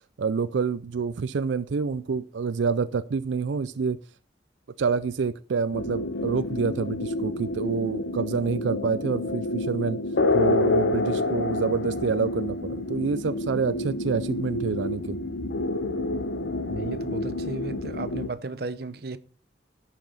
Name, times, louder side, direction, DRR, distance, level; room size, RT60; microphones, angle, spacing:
voice 1, 0.2-4.0 4.8-10.0 10.3-15.2, right 5 dB, 90° right, 0.4 m, -27 dB
sound 1, 5.7-18.3, left 2 dB, 85° left, 0.8 m, -28 dB
voice 2, 16.7-19.2, right 3 dB, 55° right, 0.7 m, -34 dB
11.5 x 5.9 x 5.6 m
head